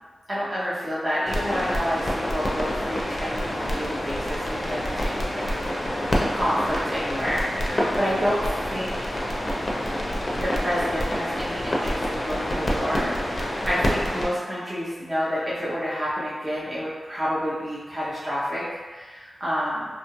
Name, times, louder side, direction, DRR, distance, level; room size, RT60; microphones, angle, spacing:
voice 1, 0.3-9.2 10.4-19.9, equal, 25° right, -9 dB, 0.6 m, -29 dB
sound 1, 1.3-14.3, equal, 30° left, 0.5 m, -27 dB
2.7 x 2.3 x 2.9 m, 1.3 s
wide cardioid pair, 125°, 0 cm